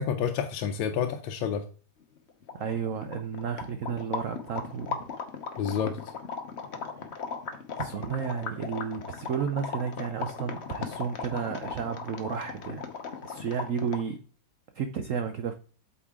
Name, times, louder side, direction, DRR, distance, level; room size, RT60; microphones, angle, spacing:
voice 1, 0.0-1.6 5.6-6.0, left 7 dB, 85° left, 1.5 m, -29 dB
sound 1, 2.2-2.3 2.4-14.2, left 5 dB, 45° left, 0.9 m, -37 dB
voice 2, 2.5-5.0 7.8-12.9 13.2-14.2 14.7-15.5, right 7 dB, 80° right, 0.7 m, -32 dB
8.2 x 5.4 x 3.6 m
omnidirectional pair, 2.1 m